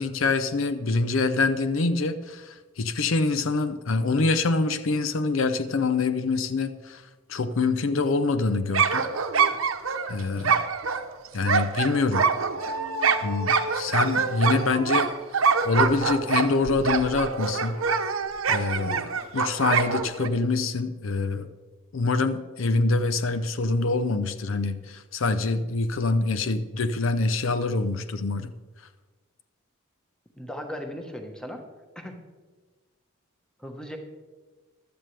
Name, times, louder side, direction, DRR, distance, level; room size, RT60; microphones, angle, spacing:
voice 1, 0.0-7.0 7.3-9.0 10.1-10.6 11.3-12.3 13.2-15.1 15.6-17.8 18.5-21.5 21.9-28.5, left 3 dB, 65° left, 11 dB, 0.6 m, -25 dB
sound 1, 8.7-20.3, right 5 dB, 75° right, 0.9 m, -25 dB
voice 2, 30.4-31.6 31.9-32.2 33.6-34.0, equal, 5° left, 3 dB, 1.2 m, -37 dB
15.0 x 12.0 x 3.3 m, 1.3 s
head